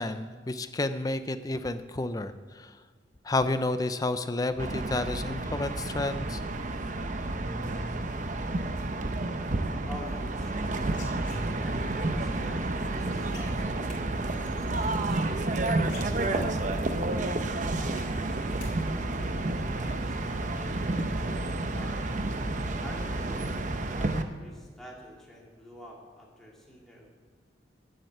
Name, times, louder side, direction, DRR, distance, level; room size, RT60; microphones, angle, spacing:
voice 1, 0.0-2.7 3.2-6.4, left 2 dB, 20° left, 11 dB, 0.5 m, -30 dB
sound 1, 4.6-24.2, right 2 dB, 45° right, 0.8 m, -30 dB
voice 2, 9.8-10.8 11.6-13.9 14.6-16.8 17.6-20.9 21.7-22.2 22.8-27.1, equal, ahead, -4 dB, 2.5 m, -47 dB
sound 2, 10.6-11.9 13.3-14.0 15.4-15.5 15.8-16.7 17.1-17.2 17.5-18.8 19.0-19.5, left 1 dB, 65° left, 4.1 m, -43 dB
11.5 x 7.9 x 8.0 m, 1.5 s
head